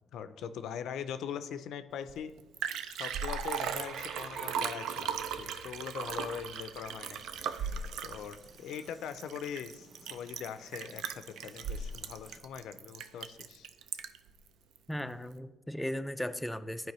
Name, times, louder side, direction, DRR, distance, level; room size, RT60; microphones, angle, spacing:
voice 1, 0.1-2.3 2.9-7.2 8.0-13.7, left 8 dB, 80° left, 11 dB, 0.4 m, -41 dB
Liquid, 2.1-2.2 2.4-14.3 14.8-14.9, right 7 dB, 85° right, 0.3 m, -37 dB
sound 1, 3.1-8.2, right 2 dB, 65° right, 1.6 m, -53 dB
sound 2, 7.1-12.4, right 3 dB, 40° right, 0.7 m, -59 dB
voice 2, 14.9-16.9, equal, 5° left, 9 dB, 0.3 m, -36 dB
11.0 x 4.5 x 3.1 m, 1.1 s
cardioid pair, 90°, 0 cm